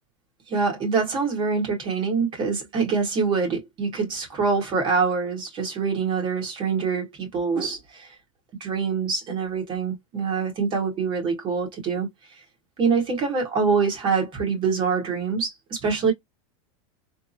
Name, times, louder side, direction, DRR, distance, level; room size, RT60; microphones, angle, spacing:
voice 1, 0.5-8.1 8.6-12.1 12.8-16.1, right 5 dB, 30° right, 1.6 m, -25 dB
3.6 x 2.0 x 2.6 m
supercardioid pair, 150°, 17 cm